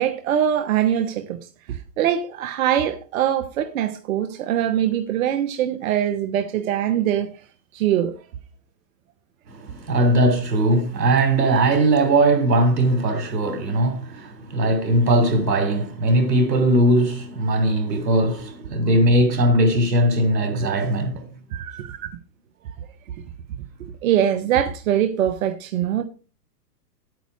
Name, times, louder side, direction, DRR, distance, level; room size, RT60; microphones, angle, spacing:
voice 1, 0.0-1.4 1.7-7.3 7.7-8.1 21.5-22.0 24.0-26.0, right 10 dB, 55° right, 1.2 m, -22 dB
voice 2, 9.5-21.2, right 1 dB, 90° right, 3.5 m, -19 dB
9.7 x 9.1 x 4.8 m
hypercardioid pair, 135°, 48 cm